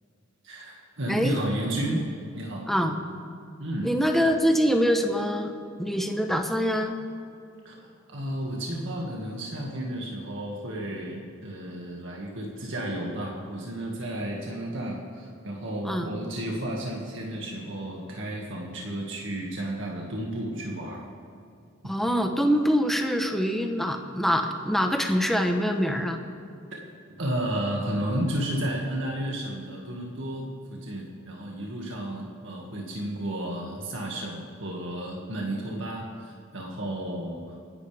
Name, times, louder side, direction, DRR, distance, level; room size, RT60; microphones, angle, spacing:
voice 1, 0.4-2.0 2.3-2.7 3.6-3.9 7.6-21.0 27.2-37.6, right 1 dB, 70° right, -2 dB, 2.0 m, -32 dB
voice 2, 3.8-5.5 5.8-7.0 15.8-16.1 21.8-26.2, equal, ahead, 4 dB, 1.1 m, -24 dB
26.5 x 11.0 x 3.5 m, 2.4 s
head